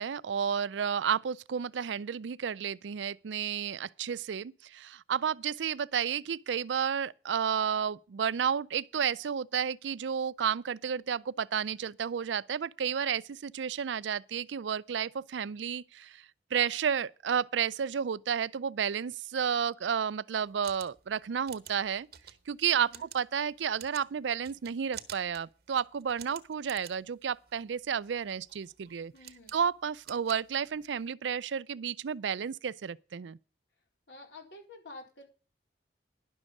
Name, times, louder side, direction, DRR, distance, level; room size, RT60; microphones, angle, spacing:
voice 1, 0.0-16.3 16.5-22.1 22.5-29.1 29.5-33.4, right 7 dB, 85° right, 0.4 m, -32 dB
sound 1, 20.4-31.1, right 10 dB, 60° right, 1.0 m, -51 dB
voice 2, 22.7-23.1 29.1-29.6 34.1-35.2, left 2 dB, 80° left, 4.1 m, -49 dB
11.0 x 6.4 x 7.2 m
head